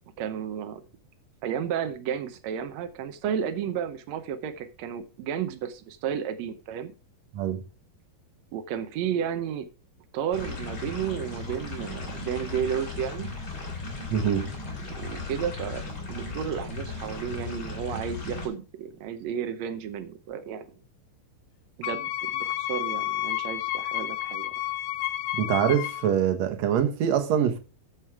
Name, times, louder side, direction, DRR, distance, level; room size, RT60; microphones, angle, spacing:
voice 1, 0.2-0.8 1.4-6.9 8.5-9.7 10.1-13.3 14.9-15.8 16.1-20.7 21.8-24.5, right 8 dB, 85° right, 1.5 m, -32 dB
sound 1, 10.3-18.5, left 3 dB, 30° left, 2.9 m, -36 dB
voice 2, 14.1-14.5 25.3-27.6, right 9 dB, 60° right, 2.0 m, -24 dB
Wind instrument woodwind instrument, 21.8-26.1, left 14 dB, 90° left, 1.7 m, -31 dB
13.5 x 5.1 x 4.7 m
omnidirectional pair, 4.3 m